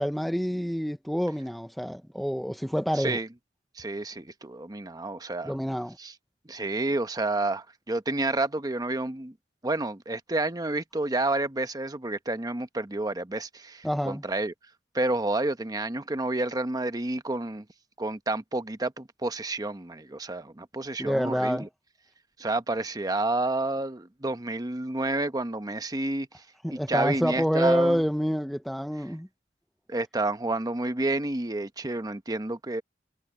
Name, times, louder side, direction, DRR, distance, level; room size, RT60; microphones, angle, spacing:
voice 1, 0.0-3.2 5.4-6.0 13.8-14.2 21.0-21.7 26.6-29.3, equal, ahead, 0.5 m, -27 dB
voice 2, 2.9-3.3 3.8-5.5 6.0-6.1 6.5-9.3 9.6-14.5 14.9-17.6 18.0-21.7 22.4-26.3 26.7-28.0 29.9-32.8, right 2 dB, 20° right, 0.9 m, -29 dB
head